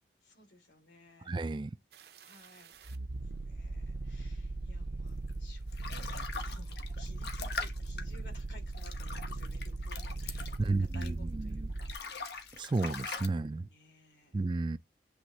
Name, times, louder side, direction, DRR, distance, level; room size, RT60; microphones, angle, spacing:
voice 1, 0.2-1.4 2.2-2.8 3.0-13.0 13.7-14.5, left 1 dB, 85° left, 3.1 m, -57 dB
voice 2, 1.3-1.7 10.6-11.7 12.6-13.7 14.3-14.8, right 3 dB, 25° right, 0.3 m, -32 dB
sound 1, 1.9-12.0, right 2 dB, 65° right, 0.7 m, -39 dB
sound 2, 5.3-11.4 11.7-13.3, left 4 dB, 70° left, 1.2 m, -42 dB
7.9 x 3.5 x 4.2 m
head